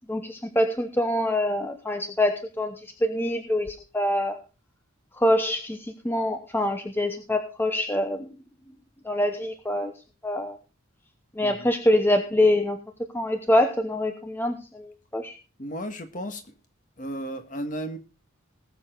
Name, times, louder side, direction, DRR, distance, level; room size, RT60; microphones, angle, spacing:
voice 1, 0.1-2.8 3.0-4.4 5.2-8.3 9.0-9.9 10.2-10.6 11.4-12.8 13.1-15.3, left 1 dB, 10° left, 6 dB, 0.9 m, -25 dB
voice 2, 11.4-11.7 15.6-16.5 17.0-18.0, equal, 40° left, 7 dB, 1.7 m, -34 dB
19.5 x 7.1 x 3.9 m, 0.31 s
head